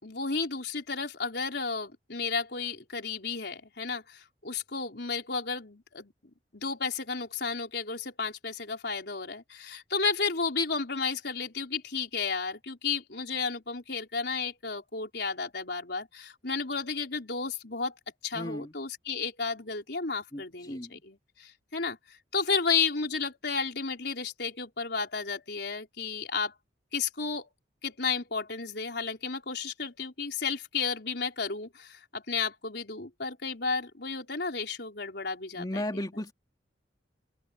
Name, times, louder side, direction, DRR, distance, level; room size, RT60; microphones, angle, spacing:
voice 1, 0.0-6.1 6.5-17.9 18.2-26.5 26.9-27.5 27.8-36.0, left 5 dB, 65° left, 4.6 m, -33 dB
voice 2, 18.3-18.7 20.3-20.9 35.6-36.3, left 1 dB, 25° left, 2.7 m, -35 dB
open air
head